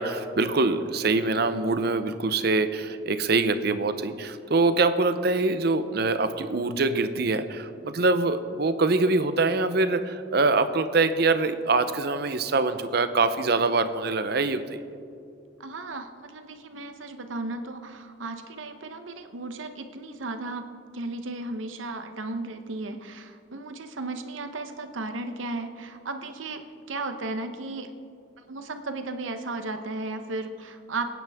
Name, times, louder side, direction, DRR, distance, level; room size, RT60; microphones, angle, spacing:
voice 1, 0.0-14.8, right 3 dB, 55° right, 10 dB, 0.7 m, -24 dB
voice 2, 15.6-20.7 20.9-27.9 28.5-31.1, right 2 dB, 90° right, 7 dB, 0.9 m, -35 dB
22.5 x 9.5 x 3.6 m, 2.4 s
head